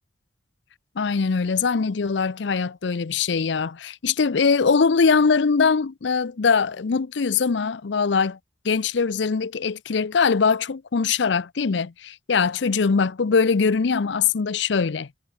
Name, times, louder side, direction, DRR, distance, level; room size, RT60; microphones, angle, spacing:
voice 1, 1.0-8.4 8.6-15.1, left 5 dB, 70° left, 0.6 m, -22 dB
head